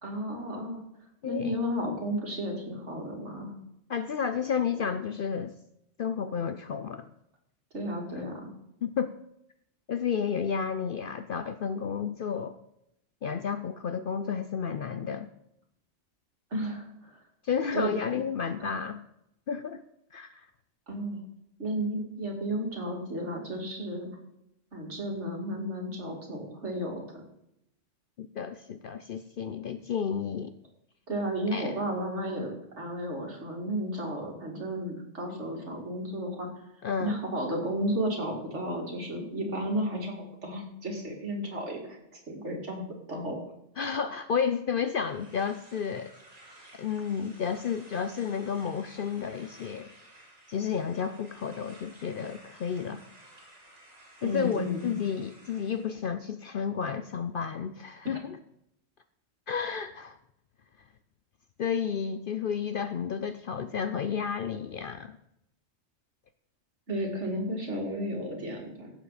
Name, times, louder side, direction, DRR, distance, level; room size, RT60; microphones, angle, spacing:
voice 1, 0.0-0.8 1.2-3.5 7.7-8.5 16.5-17.2 17.7-17.9 18.6-18.7 20.9-21.2 21.6-24.1 24.7-27.2 31.1-36.5 37.0-42.0 42.3-43.4 54.2-55.0 66.9-68.9, equal, 65° right, 0 dB, 2.9 m, -33 dB
voice 2, 1.2-1.6 3.9-5.5 6.0-7.1 8.8-9.1 9.9-12.6 13.2-15.3 17.4-19.0 19.5-19.8 20.1-20.5 28.2-30.5 31.5-31.8 36.8-37.2 43.8-46.1 46.8-49.9 50.5-53.0 54.2-58.4 59.5-60.2 61.6-65.2, left 7 dB, 55° left, 10 dB, 0.6 m, -31 dB
sound 1, 45.0-55.9, right 1 dB, 30° right, 5.6 m, -54 dB
16.5 x 7.3 x 4.2 m, 0.79 s
omnidirectional pair, 1.3 m